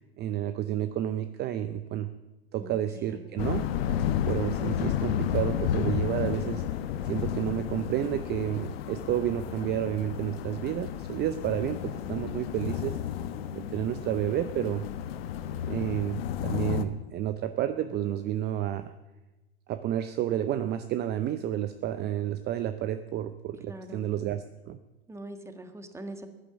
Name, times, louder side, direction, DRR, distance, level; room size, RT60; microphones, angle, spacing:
voice 1, 0.0-2.1 2.5-3.7 4.3-6.6 7.0-13.0 13.5-14.9 15.6-18.9 19.7-24.8, right 11 dB, 30° right, 11 dB, 0.7 m, -30 dB
voice 2, 2.6-3.4 23.7-24.0 25.1-26.3, right 1 dB, 10° right, 8 dB, 1.6 m, -43 dB
sound 1, 3.4-16.8, left 10 dB, 65° left, 1.2 m, -32 dB
14.5 x 11.5 x 7.2 m, 1.1 s
hypercardioid pair, 105°, 32 cm